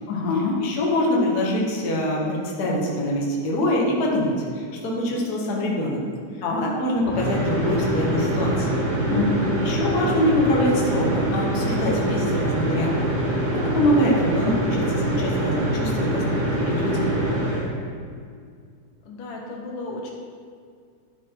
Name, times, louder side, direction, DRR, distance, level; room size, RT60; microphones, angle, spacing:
voice 1, 0.1-0.6 6.4-6.7 9.1-9.5 19.1-20.1, left 3 dB, 80° left, -1 dB, 2.7 m, -27 dB
voice 2, 0.6-6.0 6.6-8.8 9.6-17.1, left 1 dB, 50° left, -3 dB, 1.2 m, -24 dB
sound 1, 7.0-17.6, right 1 dB, 75° right, 3.7 m, -25 dB
11.5 x 4.7 x 4.5 m, 2.2 s
omnidirectional pair, 3.6 m